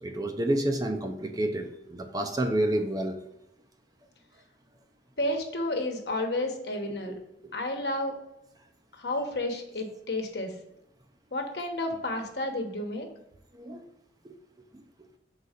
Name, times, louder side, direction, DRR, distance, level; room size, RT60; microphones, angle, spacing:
voice 1, 0.0-3.2 7.0-7.2 7.4-7.5 13.5-13.8 14.2-14.3 14.7-14.8, right 1 dB, 20° right, 5 dB, 0.6 m, -29 dB
voice 2, 5.2-7.1 7.5-8.1 8.9-10.5 11.3-13.1, left 1 dB, 65° left, 4 dB, 1.1 m, -31 dB
5.4 x 4.0 x 4.9 m, 0.86 s
head